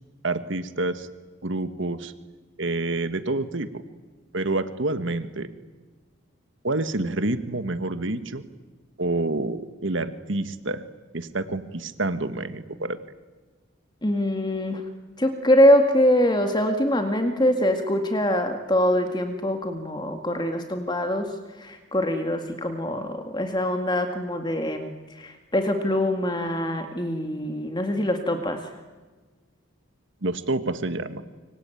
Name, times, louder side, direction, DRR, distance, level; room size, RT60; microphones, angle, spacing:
voice 1, 0.2-1.1 1.4-2.1 2.6-3.8 4.3-5.5 6.6-8.4 9.0-10.8 11.1-13.0 30.2-31.2, right 2 dB, 65° right, 11 dB, 1.6 m, -28 dB
voice 2, 14.0-14.8 15.2-28.6, left 1 dB, 20° left, 6 dB, 2.0 m, -23 dB
25.5 x 25.0 x 9.2 m, 1.3 s
head